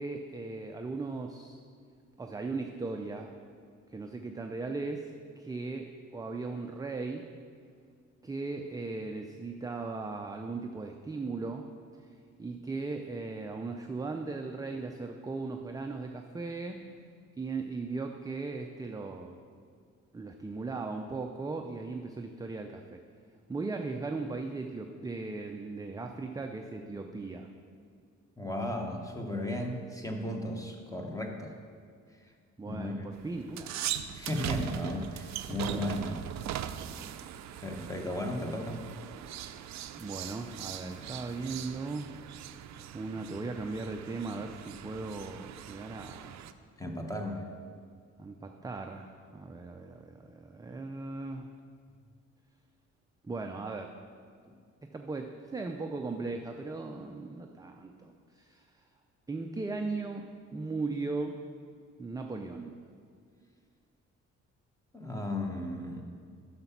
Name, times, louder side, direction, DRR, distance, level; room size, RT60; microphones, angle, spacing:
voice 1, 0.0-1.6 2.2-3.4 3.9-7.3 8.2-11.7 12.0-12.1 12.4-16.8 17.4-19.4 20.1-23.0 23.5-27.5 32.6-33.7 35.5-35.6 35.9-36.1 39.9-42.1 42.9-46.4 48.2-51.5 53.2-53.9 54.9-58.9 59.3-60.3 60.5-61.4 62.0-62.7, right 3 dB, 10° right, 4 dB, 0.4 m, -38 dB
voice 2, 28.4-31.5 32.6-33.1 34.1-36.2 37.6-38.8 46.8-47.4 54.4-54.5 64.9-66.0, left 1 dB, 10° left, 2 dB, 1.1 m, -35 dB
sound 1, 33.1-46.5, right 11 dB, 65° right, 0.5 m, -40 dB
7.6 x 5.9 x 5.9 m, 2.1 s
cardioid pair, 90°, 30 cm